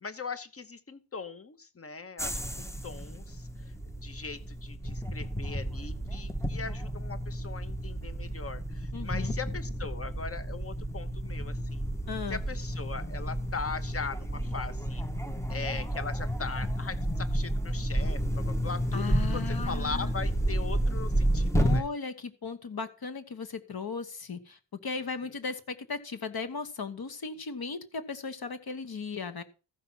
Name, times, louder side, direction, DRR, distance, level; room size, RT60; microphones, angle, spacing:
voice 1, 0.0-3.5 4.0-11.8 12.3-15.0 15.5-21.8 25.2-25.3, left 4 dB, 30° left, 13 dB, 0.9 m, -40 dB
sound 1, 2.2-21.8, equal, 5° left, 0.7 m, -31 dB
voice 2, 8.9-9.3 12.1-12.4 18.9-20.1 21.6-29.4, left 4 dB, 50° left, 10 dB, 1.3 m, -37 dB
14.5 x 5.8 x 5.6 m, 0.34 s
wide cardioid pair, 150°, 45 cm